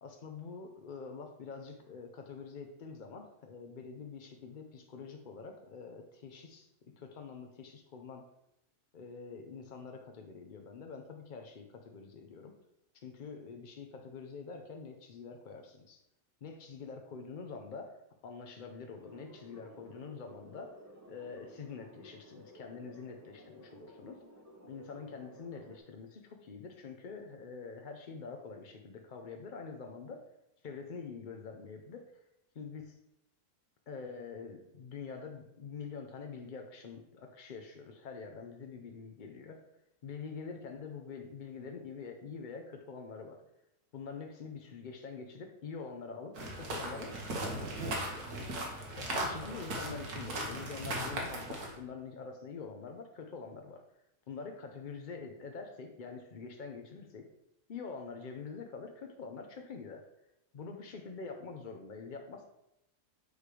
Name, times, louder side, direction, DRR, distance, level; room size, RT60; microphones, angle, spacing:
voice 1, 0.0-6.7 7.0-8.2 8.9-12.6 12.9-16.0 16.4-18.0 18.2-20.8 21.1-24.2 24.7-30.2 30.6-32.0 32.5-32.9 33.9-39.6 40.0-43.4 43.9-48.3 48.9-53.8 54.3-57.3 57.7-60.0 60.5-62.4, left 5 dB, 65° left, 3 dB, 0.5 m, -45 dB
sound 1, 19.0-25.8, equal, 15° right, 0.6 m, -54 dB
sound 2, 46.3-51.8, right 1 dB, 70° right, 1.7 m, -38 dB
8.4 x 3.3 x 4.8 m, 0.85 s
omnidirectional pair, 1.7 m